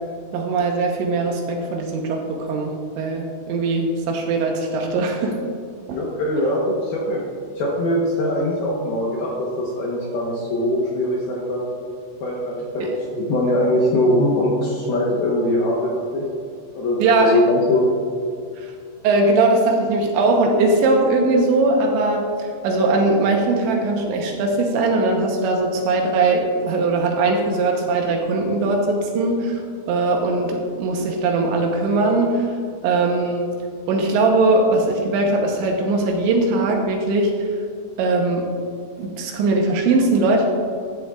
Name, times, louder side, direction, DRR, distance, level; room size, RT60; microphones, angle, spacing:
voice 1, 0.3-5.4 5.9-6.0 12.8-12.9 17.0-17.4 18.6-18.7 19.0-29.6 29.9-32.5 32.8-33.5 33.9-37.5 38.0-38.5 39.0-40.5, right 2 dB, 75° right, 1 dB, 3.0 m, -20 dB
voice 2, 5.9-7.2 7.6-11.7 12.2-12.9 13.1-16.2 16.7-17.9, left 1 dB, 70° left, -4 dB, 2.4 m, -21 dB
13.5 x 9.9 x 2.4 m, 2.3 s
omnidirectional pair, 5.7 m